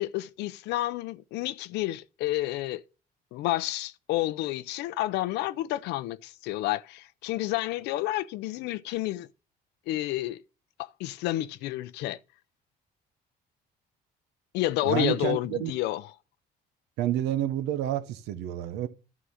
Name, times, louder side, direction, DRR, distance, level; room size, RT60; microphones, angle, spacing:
voice 1, 0.0-2.8 3.3-9.3 9.9-10.4 10.8-12.2 14.5-16.1, left 16 dB, 85° left, 0.6 m, -30 dB
voice 2, 14.8-15.7 17.0-18.9, right 12 dB, 90° right, 0.9 m, -29 dB
11.0 x 3.8 x 6.3 m
cardioid pair, 110°, 17 cm